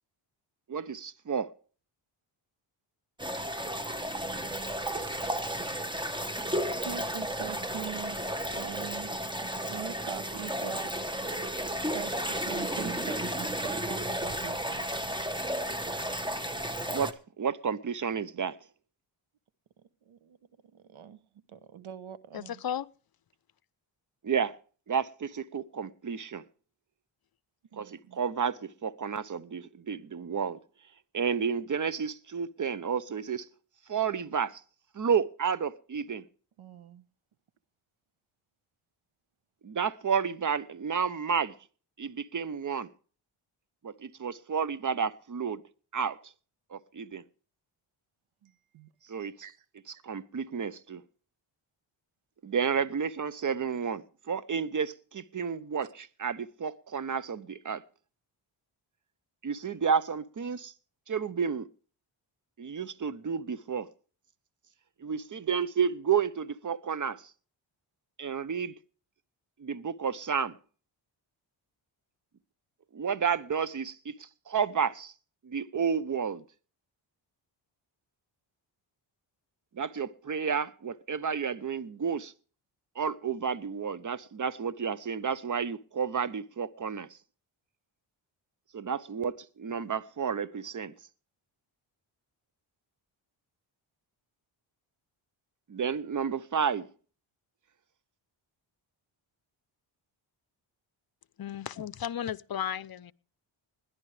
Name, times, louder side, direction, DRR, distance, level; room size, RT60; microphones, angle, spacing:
voice 1, 0.7-1.5 16.9-18.6 24.2-24.6 24.9-26.4 27.8-30.6 31.1-33.5 33.9-34.6 34.9-36.2 39.6-41.5 42.0-42.9 43.8-45.6 45.9-46.3 46.7-47.2 49.1-49.3 50.0-51.0 52.4-57.8 59.4-60.7 61.1-61.7 62.6-63.9 65.0-67.2 68.2-68.7 69.6-70.6 72.9-75.1 75.4-76.4 79.7-82.3 83.0-87.2 88.7-90.9 95.7-96.9, right 6 dB, 40° right, 0.9 m, -31 dB
sound 1, 3.2-17.1, right 1 dB, 10° right, 1.4 m, -33 dB
voice 2, 4.8-5.7 6.8-9.2 9.7-11.2 11.9-14.9 20.1-20.4 20.7-21.2 21.5-22.6 27.7-28.2 36.6-37.0 48.4-48.9 49.2-49.5, right 9 dB, 75° right, 1.1 m, -43 dB
voice 3, 22.3-22.9 101.4-103.1, left 9 dB, 45° left, 0.7 m, -34 dB
20.5 x 11.5 x 3.3 m
cardioid pair, 60°, 50 cm